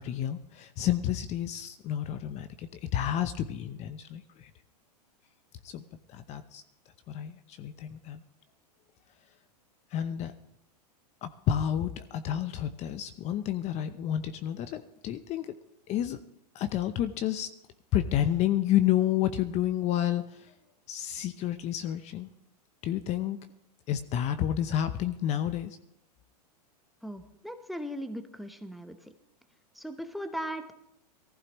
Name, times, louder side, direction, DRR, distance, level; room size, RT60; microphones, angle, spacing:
voice 1, 0.0-4.5 5.6-6.6 7.1-8.2 9.9-10.3 11.2-15.5 15.9-16.2 16.5-17.5 17.9-20.5 20.9-22.3 22.8-23.4 23.9-25.8, left 11 dB, 35° left, 11 dB, 0.7 m, -30 dB
voice 2, 27.0-29.0 29.8-30.7, equal, ahead, 8 dB, 0.9 m, -38 dB
19.5 x 15.0 x 3.1 m, 0.80 s
hypercardioid pair, 120°, 21 cm